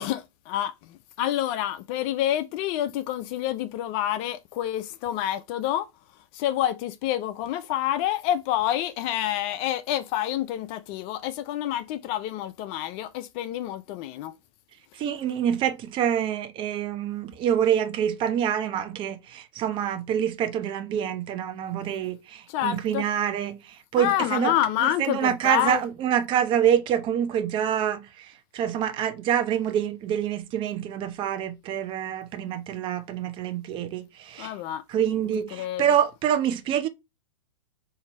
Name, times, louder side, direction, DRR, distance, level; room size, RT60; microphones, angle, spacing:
voice 1, 0.0-5.9 6.3-14.3 22.5-23.1 24.0-25.8 34.4-34.8 35.5-36.0, left 12 dB, 35° left, 0.4 m, -28 dB
voice 2, 15.0-24.5 24.8-34.5 34.9-36.9, right 9 dB, 30° right, 0.8 m, -26 dB
4.4 x 2.7 x 4.4 m
hypercardioid pair, 110°, 17 cm